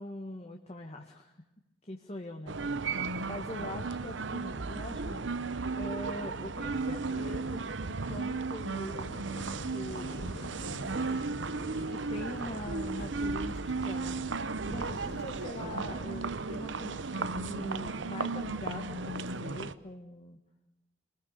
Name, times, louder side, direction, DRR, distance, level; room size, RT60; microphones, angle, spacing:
voice 1, 0.0-1.3 1.8-5.3 5.7-9.2 9.7-10.5 11.9-14.2 14.6-20.4, left 1 dB, 35° left, 3 dB, 1.8 m, -43 dB
sound 1, 2.5-19.7, right 3 dB, 70° right, 0.9 m, -35 dB
sound 2, 9.0-17.0, left 1 dB, 65° left, 3.5 m, -48 dB
27.0 x 20.5 x 6.7 m, 0.92 s
head